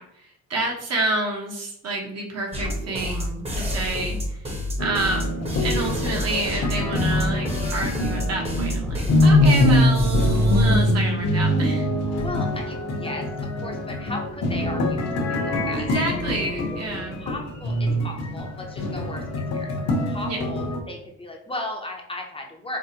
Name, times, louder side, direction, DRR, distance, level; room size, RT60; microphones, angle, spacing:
voice 1, 0.0-4.4 4.8-11.9 15.7-17.2 20.3-20.4, right 2 dB, 55° right, 0 dB, 1.0 m, -29 dB
sound 1, 2.5-10.9, left 1 dB, 20° right, 0.9 m, -28 dB
sound 2, 4.8-20.8, left 1 dB, 55° left, 0.8 m, -23 dB
voice 2, 12.1-16.1 16.7-16.8 17.2-19.2 19.5-22.8, left 1 dB, 20° left, 0 dB, 0.6 m, -36 dB
4.6 x 2.1 x 2.8 m, 0.73 s
cardioid pair, 90°, 30 cm